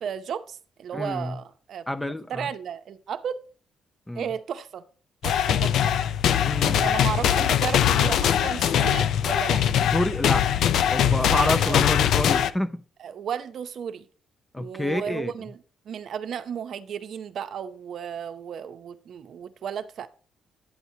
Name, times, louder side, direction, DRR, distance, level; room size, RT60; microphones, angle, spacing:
voice 1, 0.0-1.8 2.3-3.4 4.1-4.8 5.2-5.9 6.6-9.6 11.3-11.8 13.0-14.1 14.6-20.1, right 8 dB, 65° right, 0.6 m, -34 dB
voice 2, 0.9-1.4 1.9-2.5 4.1-4.3 6.5-6.9 9.9-10.5 10.9-12.8 14.5-15.3, left 1 dB, 10° left, 0.6 m, -28 dB
sound 1, 5.2-12.5, left 10 dB, 75° left, 0.4 m, -22 dB
9.4 x 7.8 x 2.8 m
cardioid pair, 90°, 0 cm